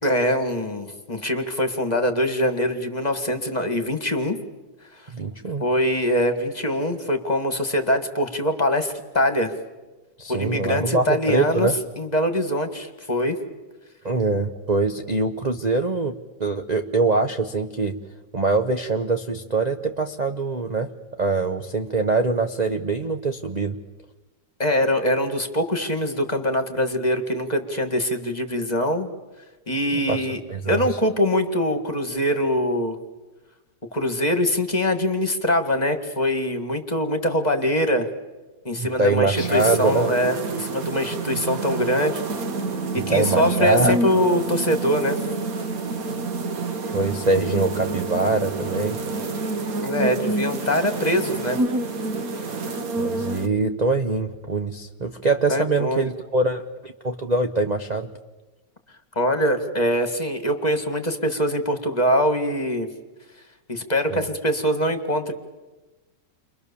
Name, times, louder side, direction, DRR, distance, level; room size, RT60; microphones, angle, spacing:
voice 1, 0.0-4.4 5.6-9.5 10.3-13.4 24.6-29.1 29.7-30.4 30.7-33.0 33.9-38.1 38.7-42.2 42.9-45.2 49.8-51.6 55.5-56.1 59.2-62.9 63.7-65.3, equal, 25° left, 7 dB, 1.9 m, -23 dB
voice 2, 5.1-5.6 10.2-11.8 14.0-18.0 18.3-20.9 21.2-23.8 29.9-30.8 38.8-40.1 43.0-44.0 46.9-49.0 53.0-58.1 64.1-64.2, right 3 dB, 30° right, 5 dB, 0.9 m, -23 dB
sound 1, 39.3-53.5, right 3 dB, 55° right, 1.6 m, -28 dB
30.0 x 24.0 x 7.0 m, 1.2 s
omnidirectional pair, 1.9 m